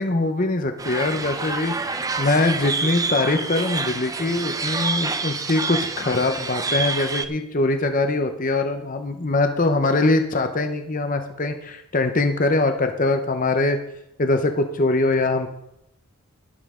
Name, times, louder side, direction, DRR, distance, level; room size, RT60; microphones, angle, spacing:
voice 1, 0.0-13.8 14.2-15.5, left 2 dB, 35° left, 7 dB, 0.8 m, -22 dB
sound 1, 0.8-7.3, right 4 dB, 15° right, 0.5 m, -27 dB
12.5 x 11.5 x 3.7 m, 0.82 s
head